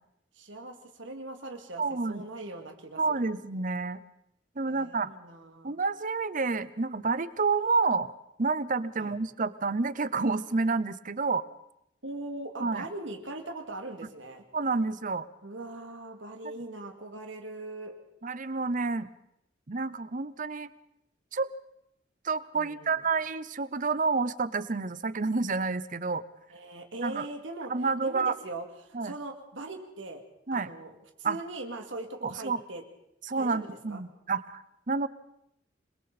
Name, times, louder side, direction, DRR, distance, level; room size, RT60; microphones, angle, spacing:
voice 1, 0.3-1.8 2.1-3.3 4.6-5.8 9.0-9.2 12.0-14.4 15.4-17.9 22.5-23.0 26.5-27.7 28.0-30.2 30.5-32.8 33.4-34.0, right 2 dB, 85° right, 4 dB, 2.8 m, -40 dB
voice 2, 1.8-2.2 3.0-4.0 4.6-5.1 5.6-8.1 8.4-11.4 12.6-12.9 14.5-15.2 16.4-16.5 18.2-19.1 19.7-20.7 21.3-21.5 22.2-26.2 27.0-27.3 27.7-28.3 28.9-29.1 30.5-30.7 31.2-31.4 32.2-32.6 33.2-35.1, right 4 dB, 45° right, 15 dB, 0.8 m, -29 dB
27.5 x 22.0 x 4.3 m, 0.80 s
head